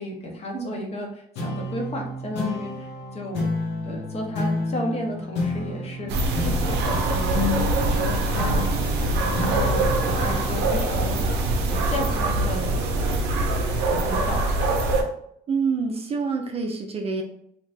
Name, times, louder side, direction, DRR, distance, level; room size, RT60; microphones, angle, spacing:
voice 1, 0.0-3.5 3.8-7.4 7.8-8.7 8.9-11.4 11.7-12.9 13.9-14.4, left 1 dB, 40° left, 1 dB, 0.8 m, -33 dB
sound 1, 1.4-12.2, left 2 dB, 90° left, 0.8 m, -31 dB
sound 2, 6.1-15.0, right 2 dB, 80° right, 0.6 m, -23 dB
voice 2, 15.5-17.2, right 5 dB, 35° right, 3 dB, 0.5 m, -27 dB
2.8 x 2.1 x 3.2 m, 0.68 s
cardioid pair, 110°, 17 cm